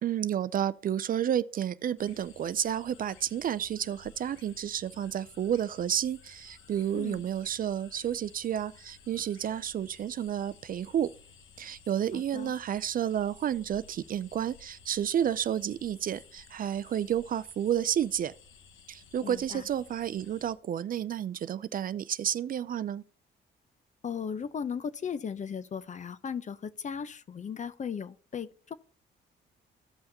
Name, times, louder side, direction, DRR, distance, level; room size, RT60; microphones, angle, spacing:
voice 1, 0.0-11.1 11.6-18.3 18.9-23.0, right 10 dB, 45° right, 0.4 m, -31 dB
sound 1, 2.0-20.5, left 5 dB, 80° left, 1.0 m, -56 dB
voice 2, 12.1-12.5 19.2-19.6 24.0-28.7, left 7 dB, 40° left, 0.6 m, -37 dB
16.0 x 5.6 x 2.8 m
cardioid pair, 90°, 20 cm